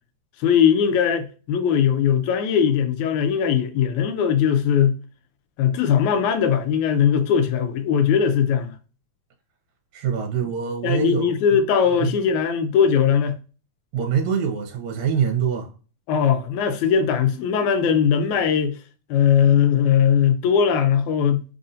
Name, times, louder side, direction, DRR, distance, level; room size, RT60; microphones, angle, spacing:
voice 1, 0.4-5.0 5.6-8.7 10.8-13.4 16.1-18.8 19.1-21.4, left 8 dB, 80° left, 2.0 m, -19 dB
voice 2, 9.9-11.3 12.0-12.1 13.9-15.7, right 7 dB, 80° right, 1.9 m, -24 dB
4.8 x 2.6 x 2.5 m
omnidirectional pair, 3.4 m